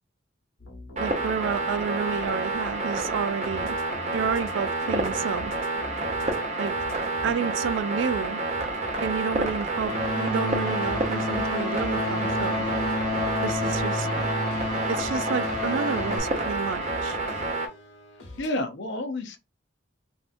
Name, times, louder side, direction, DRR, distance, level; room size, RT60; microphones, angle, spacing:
sound 1, 0.6-6.4 6.7-10.1 10.8-18.6, left 2 dB, 85° left, 1.2 m, -43 dB
sound 2, 1.0-17.7, right 2 dB, 35° right, 0.7 m, -29 dB
voice 1, 1.0-3.8 4.1-5.5 6.6-6.7 7.2-8.4 9.0-12.6 13.4-14.1 14.9-17.2, right 6 dB, 70° right, 0.3 m, -30 dB
sound 3, 9.7-16.2, left 2 dB, 20° left, 0.9 m, -30 dB
voice 2, 14.0-14.3 18.4-19.4, left 1 dB, 65° left, 0.6 m, -32 dB
3.3 x 2.7 x 2.5 m
head